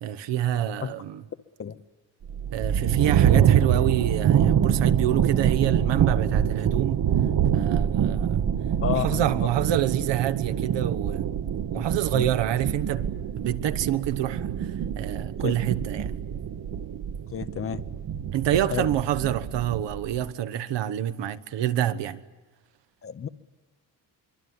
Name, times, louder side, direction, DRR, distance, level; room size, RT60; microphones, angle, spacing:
voice 1, 0.0-1.2 2.5-7.1 7.5-8.5 8.9-11.3 11.7-13.1 13.4-16.2 18.3-22.2, right 11 dB, 75° right, 1.3 m, -27 dB
sound 1, 2.2-20.3, right 9 dB, 45° right, 1.1 m, -25 dB
voice 2, 8.8-9.4 11.7-11.9 12.1-12.3 15.4-15.6 17.3-17.8 18.7-18.9 23.0-23.3, left 8 dB, 30° left, 0.8 m, -30 dB
24.5 x 24.0 x 9.5 m
cardioid pair, 170°, 44 cm